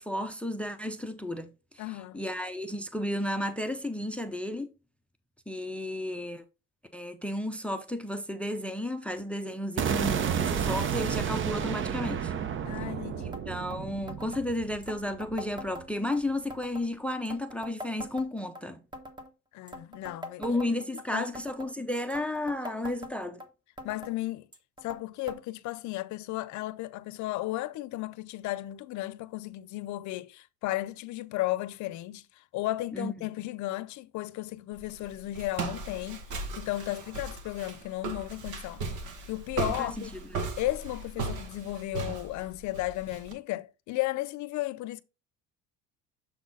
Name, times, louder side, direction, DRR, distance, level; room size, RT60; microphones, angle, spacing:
voice 1, 0.0-1.8 2.1-4.7 5.5-6.4 6.9-12.3 13.2-18.8 20.4-23.4 32.9-33.1 39.8-40.4, left 1 dB, 5° left, 0.6 m, -33 dB
voice 2, 1.8-2.2 12.6-13.4 19.5-20.4 21.1-21.3 23.8-24.5 24.8-38.8 39.3-40.1 40.6-45.0, left 17 dB, 60° left, 0.6 m, -34 dB
sound 1, 9.8-15.8, right 8 dB, 40° right, 0.7 m, -31 dB
sound 2, 13.3-13.4 13.7-13.8 14.1-14.4 14.8-16.2 16.5-16.9 17.3-18.6 18.9-19.3 19.7-21.0 21.4-21.7 22.1-23.5 23.8-24.1 24.5-25.0 25.3-25.4 25.7-25.8 26.5-26.6 27.4-27.5, left 1 dB, 15° right, 1.2 m, -43 dB
Walk footsteps, 34.7-43.3, right 3 dB, 65° right, 1.5 m, -37 dB
7.0 x 4.0 x 3.9 m
cardioid pair, 115°, 32 cm